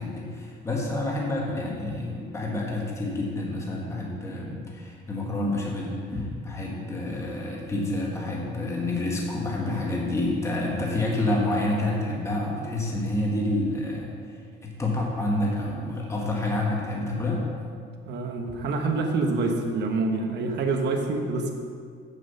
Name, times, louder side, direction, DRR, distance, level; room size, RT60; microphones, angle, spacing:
voice 1, 0.0-14.4 14.6-17.4, left 1 dB, 15° left, -2 dB, 1.4 m, -28 dB
voice 2, 18.1-21.5, right 3 dB, 55° right, 3 dB, 1.2 m, -26 dB
8.7 x 7.4 x 5.5 m, 2.1 s
cardioid pair, 155°, 21 cm